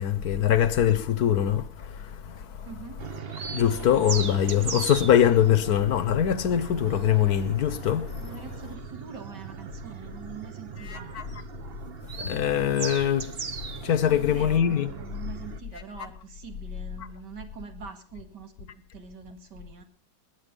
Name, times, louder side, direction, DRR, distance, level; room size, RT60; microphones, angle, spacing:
voice 1, 0.0-2.7 3.5-8.2 10.9-11.4 12.2-13.3 13.8-14.9, left 10 dB, 65° left, 1.4 m, -23 dB
voice 2, 2.6-3.0 8.2-11.1 14.0-19.8, right 6 dB, 90° right, 2.6 m, -44 dB
sound 1, 3.0-15.6, right 6 dB, 40° right, 1.1 m, -38 dB
20.0 x 9.4 x 5.3 m
omnidirectional pair, 1.8 m